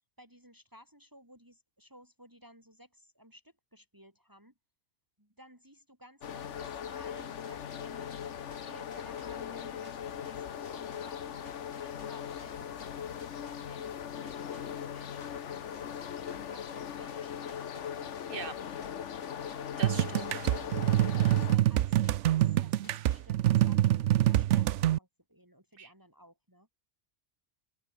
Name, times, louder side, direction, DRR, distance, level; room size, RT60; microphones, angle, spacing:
voice 1, 0.2-4.5 5.2-8.3 8.6-19.8 20.4-20.7 21.1-26.7, equal, 15° right, 6.8 m, -57 dB
sound 1, 6.2-21.6, left 8 dB, 85° left, 1.3 m, -39 dB
sound 2, 6.6-14.0 14.3-22.5 22.8-23.7, left 2 dB, 55° left, 3.7 m, -60 dB
voice 2, 19.8-20.5 25.8-25.9, right 6 dB, 50° right, 1.4 m, -41 dB
sound 3, 19.8-25.0, right 13 dB, 85° right, 0.9 m, -26 dB
omnidirectional pair, 1.2 m